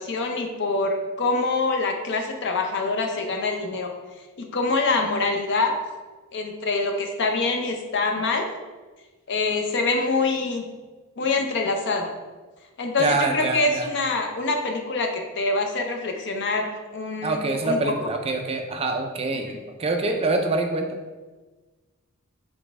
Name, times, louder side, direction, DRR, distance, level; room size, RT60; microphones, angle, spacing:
voice 1, 0.0-3.9 4.4-5.7 6.3-8.5 9.3-10.6 11.2-12.1 12.8-17.9, left 3 dB, 55° left, 3 dB, 0.6 m, -25 dB
voice 2, 13.0-13.9 17.2-21.0, right 3 dB, 25° right, 5 dB, 0.4 m, -25 dB
4.0 x 3.3 x 3.5 m, 1.3 s
head